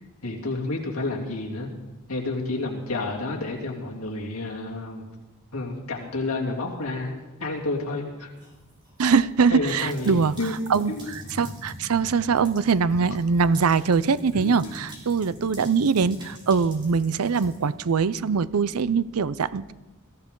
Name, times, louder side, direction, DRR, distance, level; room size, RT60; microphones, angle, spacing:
voice 1, 0.2-1.7 2.1-5.1 5.5-8.3 9.5-10.6 10.9-11.1 14.3-14.6, left 2 dB, 70° left, -2 dB, 3.1 m, -30 dB
sound 1, 8.4-9.0 9.6-17.7, equal, 20° right, 4.0 m, -44 dB
voice 2, 9.0-10.3 10.7-10.9 11.4-19.7, right 5 dB, 80° right, 17 dB, 0.5 m, -22 dB
21.5 x 14.5 x 3.9 m, 1.1 s
head